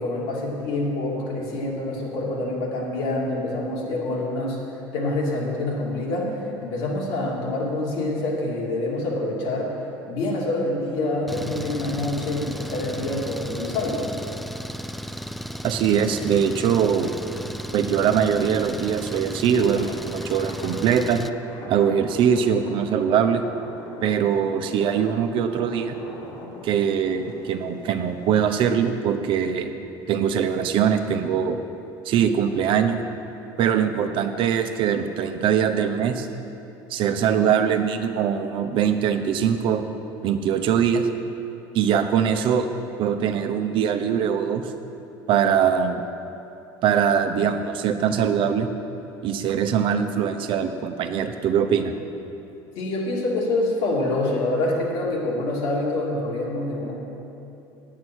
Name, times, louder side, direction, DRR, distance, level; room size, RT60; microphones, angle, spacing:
voice 1, 0.0-4.6 4.9-9.8 10.1-14.1 52.8-56.9, left 2 dB, 70° left, -3 dB, 2.7 m, -26 dB
Engine, 11.3-21.3, equal, ahead, 0.4 m, -35 dB
voice 2, 15.6-17.1 17.7-21.2 21.7-23.4 24.0-26.0 26.6-29.7 30.1-31.6 32.0-33.0 33.6-36.3 36.9-39.8 40.2-41.1 41.7-42.7 43.0-44.6 45.3-46.0 46.8-48.7 49.2-51.9, right 8 dB, 55° right, 7 dB, 0.8 m, -22 dB
sound 1, 18.5-28.7, left 2 dB, 50° left, 1.9 m, -43 dB
9.7 x 8.5 x 6.2 m, 3.0 s
supercardioid pair, 100°, 10 cm